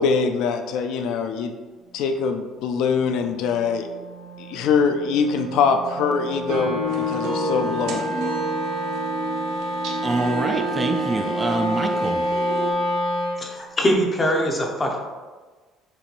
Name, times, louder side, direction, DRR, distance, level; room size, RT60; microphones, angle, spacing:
voice 1, 0.0-1.5 1.9-3.9 4.4-8.1, left 5 dB, 70° left, 6 dB, 0.3 m, -23 dB
Wind instrument woodwind instrument, 1.9-13.5, equal, 45° right, 1.4 m, -29 dB
Guitar, 6.5-10.2, left 5 dB, 90° right, 1.4 m, -31 dB
sound 1, 6.9-12.7, right 4 dB, 75° right, 0.8 m, -30 dB
voice 2, 10.0-12.2, right 2 dB, 20° right, 5 dB, 0.3 m, -25 dB
voice 3, 13.4-15.0, equal, 20° left, 1 dB, 0.8 m, -22 dB
6.6 x 3.1 x 2.5 m, 1.3 s
cardioid pair, 140°, 0 cm